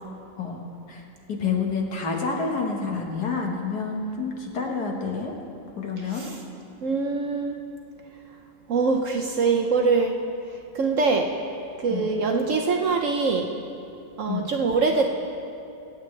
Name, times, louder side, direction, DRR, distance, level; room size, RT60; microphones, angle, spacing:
voice 1, 0.4-1.0 1.3-5.3 5.8-6.2 11.9-12.1 14.3-14.5, left 5 dB, 65° left, 0 dB, 1.9 m, -28 dB
voice 2, 6.8-7.6 8.7-10.2 10.7-11.3 11.8-13.5 14.2-15.1, right 4 dB, 60° right, 2 dB, 0.9 m, -23 dB
24.5 x 8.4 x 3.3 m, 2.7 s
omnidirectional pair, 1.8 m